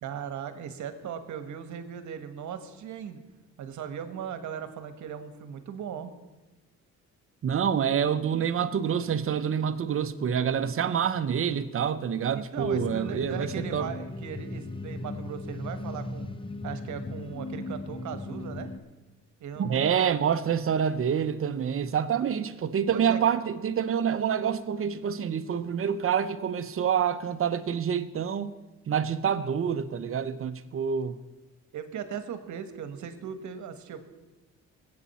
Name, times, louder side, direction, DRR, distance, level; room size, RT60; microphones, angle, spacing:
voice 1, 0.0-3.2 3.6-6.1 12.3-16.3 16.6-18.7 19.4-20.1 22.9-23.2 31.7-34.1, right 8 dB, 70° right, 1.3 m, -38 dB
voice 2, 7.4-13.9 19.6-28.5 28.9-31.1, right 8 dB, 45° right, 0.8 m, -27 dB
sound 1, 12.6-18.8, left 2 dB, 15° left, 0.8 m, -37 dB
19.5 x 8.6 x 4.2 m
cardioid pair, 90°, 30 cm